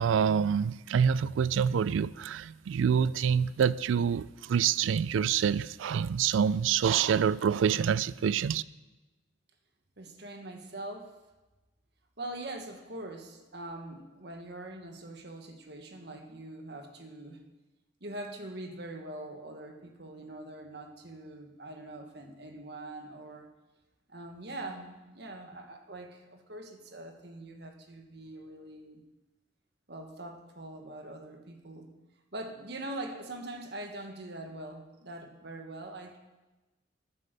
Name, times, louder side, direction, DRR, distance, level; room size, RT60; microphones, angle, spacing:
voice 1, 0.0-8.6, right 7 dB, 80° right, 0.3 m, -26 dB
voice 2, 10.0-11.1 12.2-17.4 18.0-23.5 24.1-29.0 29.9-31.9 32.3-36.2, right 1 dB, 55° right, 1.5 m, -43 dB
9.8 x 9.2 x 6.7 m
head